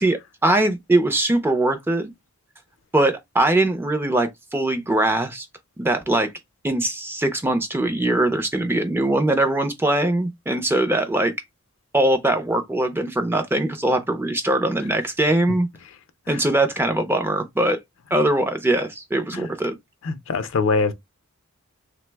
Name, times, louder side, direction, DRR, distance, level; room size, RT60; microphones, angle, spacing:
voice 1, 0.0-2.1 2.9-5.5 5.8-6.3 6.6-11.3 11.9-15.7 16.3-17.8 18.1-19.7, right 1 dB, 10° right, 0.4 m, -21 dB
voice 2, 20.0-20.9, left 4 dB, 60° left, 0.4 m, -24 dB
3.0 x 2.0 x 3.3 m
head